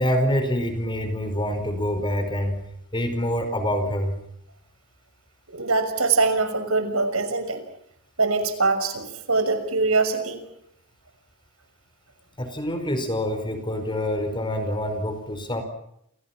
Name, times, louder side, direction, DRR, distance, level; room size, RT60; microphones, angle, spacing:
voice 1, 0.0-2.6 2.9-4.2 12.4-15.6, equal, 20° left, 8 dB, 5.0 m, -26 dB
voice 2, 5.5-7.6 8.2-10.4, right 3 dB, 75° right, 9 dB, 6.1 m, -23 dB
30.0 x 29.5 x 6.1 m, 0.76 s
head